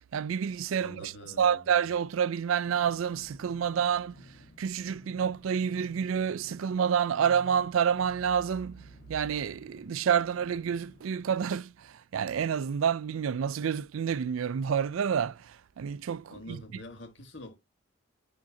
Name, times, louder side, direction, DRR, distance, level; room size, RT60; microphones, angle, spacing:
voice 1, 0.1-4.3 4.6-8.8 9.1-16.6, right 7 dB, 85° right, 0.4 m, -29 dB
voice 2, 0.8-1.7 16.3-17.6, left 2 dB, 65° left, 1.9 m, -46 dB
sound 1, 2.6-11.4, left 2 dB, 35° left, 1.6 m, -54 dB
10.5 x 3.6 x 2.8 m
head